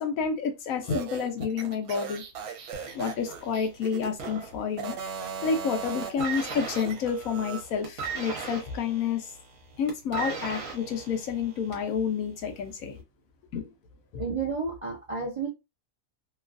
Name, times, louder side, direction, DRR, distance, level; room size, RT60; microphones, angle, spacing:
voice 1, 0.0-2.2 2.9-4.9 5.4-9.3 9.8-13.0 13.5-13.7, left 6 dB, 70° left, 1.0 m, -29 dB
sound 1, 0.8-4.3 4.7-7.6, right 7 dB, 85° right, 1.1 m, -38 dB
sound 2, 2.7-5.1 5.3-5.7 6.0-12.0 12.8-12.9, right 5 dB, 65° right, 1.3 m, -38 dB
voice 2, 14.2-15.5, right 4 dB, 45° right, 0.4 m, -31 dB
3.0 x 2.4 x 2.4 m
omnidirectional pair, 1.5 m